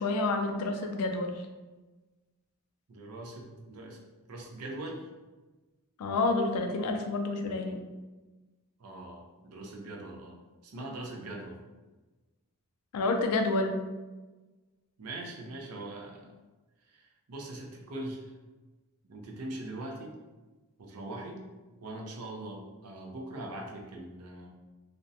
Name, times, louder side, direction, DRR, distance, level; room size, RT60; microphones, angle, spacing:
voice 1, 0.0-1.5 6.0-7.8 12.9-13.8, left 3 dB, 90° left, 4 dB, 0.4 m, -29 dB
voice 2, 2.9-4.0 4.3-5.1 8.8-10.4 10.6-11.6 15.0-16.3 16.9-18.3 19.1-20.1 20.8-21.4 21.8-24.5, right 1 dB, 85° right, 0 dB, 0.5 m, -41 dB
2.4 x 2.0 x 2.6 m, 1.2 s
head